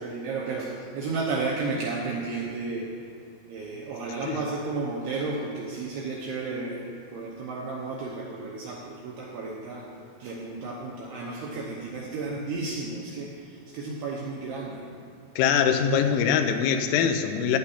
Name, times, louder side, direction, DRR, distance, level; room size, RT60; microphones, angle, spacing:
voice 1, 0.0-2.9 3.5-9.9 10.2-14.8, right 3 dB, 80° right, -4 dB, 2.4 m, -33 dB
voice 2, 15.4-17.6, left 7 dB, 90° left, 7 dB, 3.3 m, -23 dB
14.5 x 9.9 x 2.8 m, 2.3 s
omnidirectional pair, 5.8 m